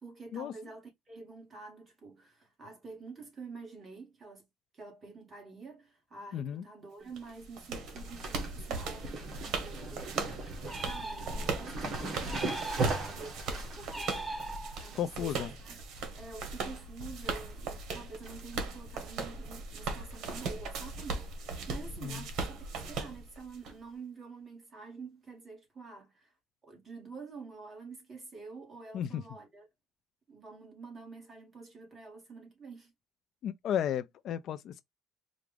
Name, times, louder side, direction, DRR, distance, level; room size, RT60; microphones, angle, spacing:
voice 1, 0.0-4.5 4.7-15.8 16.2-26.3 26.6-29.7 30.3-32.9, right 4 dB, 20° right, 1.8 m, -48 dB
voice 2, 6.3-6.6 15.0-15.5 22.0-22.2 28.9-29.2 33.4-34.8, left 9 dB, 50° left, 0.3 m, -34 dB
sound 1, 7.0-7.3 7.6-16.8 17.1-17.6 17.9-18.7 19.1-19.2 20.1-20.4 20.6-20.7 21.1-21.2 22.8-22.9 23.6-23.7, right 3 dB, 45° right, 1.4 m, -40 dB
sound 2, 7.2-23.7, right 4 dB, 65° right, 1.3 m, -39 dB
sound 3, 10.7-11.7 12.3-13.3 13.9-15.1, right 2 dB, 5° right, 0.6 m, -40 dB
4.6 x 2.5 x 3.3 m
cardioid pair, 165°, 0 cm